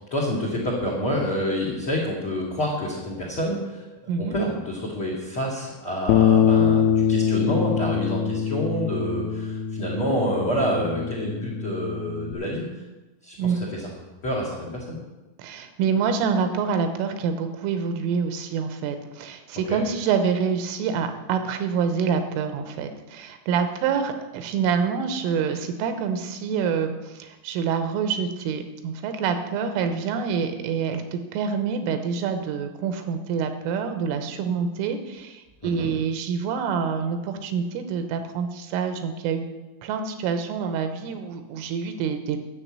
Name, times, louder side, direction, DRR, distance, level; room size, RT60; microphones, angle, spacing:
voice 1, 0.1-3.9 4.2-12.6 13.2-13.9 14.2-15.0 19.7-19.8 35.6-35.9, equal, 50° left, -2 dB, 1.5 m, -28 dB
voice 2, 4.1-4.4 13.4-13.6 15.4-39.5 39.8-42.4, right 6 dB, 80° right, 7 dB, 3.4 m, -26 dB
Bass guitar, 6.1-12.3, left 8 dB, 85° left, 3.4 m, -23 dB
10.0 x 7.1 x 8.6 m, 1.1 s
omnidirectional pair, 6.0 m